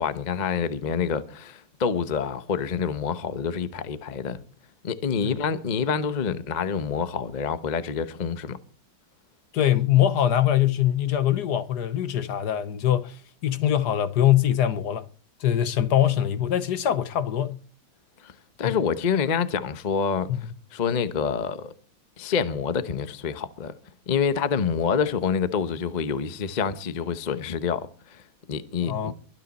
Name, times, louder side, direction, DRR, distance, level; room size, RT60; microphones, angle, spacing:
voice 1, 0.0-4.4 4.8-8.6 18.2-18.3 18.6-20.3 20.7-21.7 22.2-23.7 24.1-28.2 28.5-29.1, left 6 dB, 35° left, 0.8 m, -27 dB
voice 2, 9.5-15.0 15.4-17.6 18.6-18.8 20.3-20.4 28.8-29.1, left 11 dB, 65° left, 1.4 m, -23 dB
23.5 x 9.2 x 4.2 m
omnidirectional pair, 2.0 m